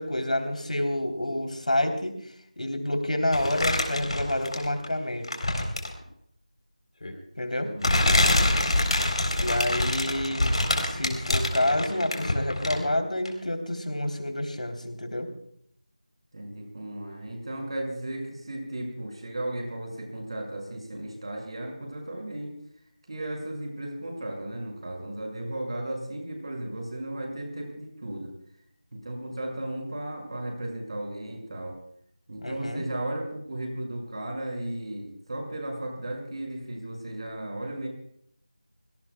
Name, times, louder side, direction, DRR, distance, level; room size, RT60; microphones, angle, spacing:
voice 1, 0.0-2.1 2.6-5.3 7.4-7.7 9.4-10.5 10.8-15.3 32.4-32.8, left 1 dB, 85° left, 5 dB, 3.4 m, -28 dB
sound 1, 3.3-4.8 5.2-6.0 7.0-7.1 7.8-12.9 13.2-13.3, left 1 dB, 55° left, 3.7 m, -25 dB
voice 2, 7.6-8.9 16.3-22.5 23.1-28.3 28.9-31.7 32.3-37.9, right 1 dB, 45° right, 1 dB, 6.0 m, -35 dB
27.0 x 18.0 x 2.3 m, 0.68 s
figure-of-eight pair, 170°, 4 cm